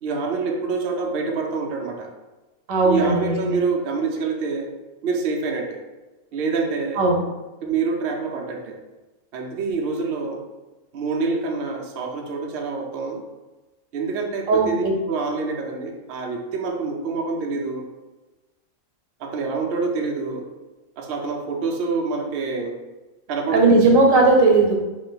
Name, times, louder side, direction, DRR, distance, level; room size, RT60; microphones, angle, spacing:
voice 1, 0.0-2.1 2.8-4.7 5.0-5.8 6.3-7.0 7.6-8.8 9.3-10.4 10.9-13.2 13.9-17.8 19.2-20.5 21.0-22.8 23.3-23.6, right 4 dB, 60° right, 0 dB, 0.7 m, -26 dB
voice 2, 2.7-3.5 7.0-7.2 14.5-14.9 23.5-24.7, right 3 dB, 85° right, 1 dB, 1.1 m, -17 dB
3.1 x 2.6 x 3.8 m, 1.1 s
omnidirectional pair, 1.4 m